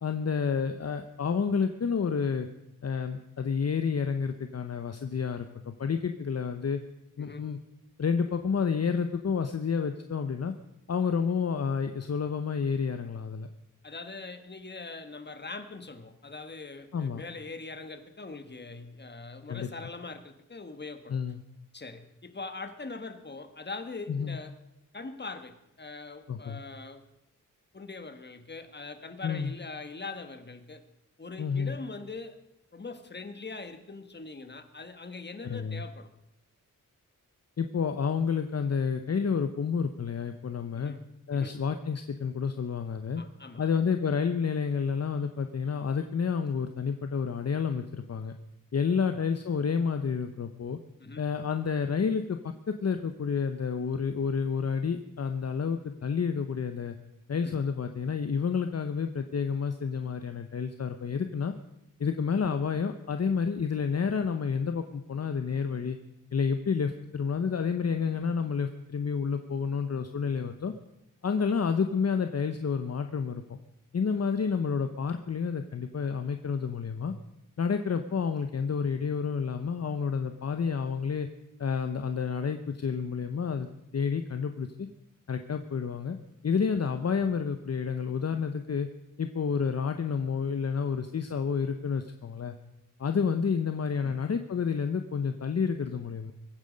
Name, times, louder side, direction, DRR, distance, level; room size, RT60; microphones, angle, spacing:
voice 1, 0.0-2.5 2.8-6.8 7.2-7.6 8.0-10.5 10.9-13.5 16.9-17.2 19.5-19.7 21.1-21.4 24.1-24.4 26.3-26.6 29.2-29.5 31.4-31.8 35.4-35.8 37.6-40.9 41.3-43.2 43.6-48.3 48.7-50.8 51.2-57.0 57.3-61.5 62.0-66.0 66.3-70.7 71.2-73.6 73.9-77.1 77.6-81.3 81.6-84.9 85.3-86.2 86.4-88.9 89.2-92.6 93.0-96.3, left 6 dB, 50° left, 8 dB, 0.8 m, -30 dB
voice 2, 13.8-21.2 21.7-24.5 24.9-27.0 27.7-30.8 31.2-32.4 32.7-36.1 40.8-41.5 43.2-43.7 49.1-49.2 51.0-51.2 57.3-57.6 94.0-94.2, left 3 dB, 30° left, 9 dB, 1.4 m, -42 dB
22.5 x 9.5 x 5.2 m, 0.84 s
wide cardioid pair, 100°, 33 cm